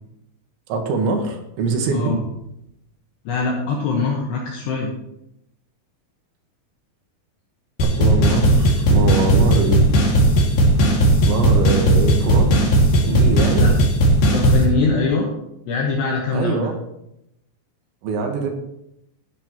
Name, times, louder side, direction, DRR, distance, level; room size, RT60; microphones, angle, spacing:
voice 1, 0.7-2.2 7.8-9.8 11.2-12.5 13.0-13.7 16.3-16.7 18.0-18.5, right 3 dB, 75° right, 3 dB, 3.7 m, -22 dB
voice 2, 1.9-2.2 3.3-4.9 13.6-13.7 14.3-15.3 15.7-16.7, left 4 dB, 70° left, -2 dB, 3.2 m, -22 dB
sound 1, 7.8-14.6, right 1 dB, 55° left, 3.5 m, -16 dB
15.5 x 9.9 x 3.0 m, 0.81 s
omnidirectional pair, 5.5 m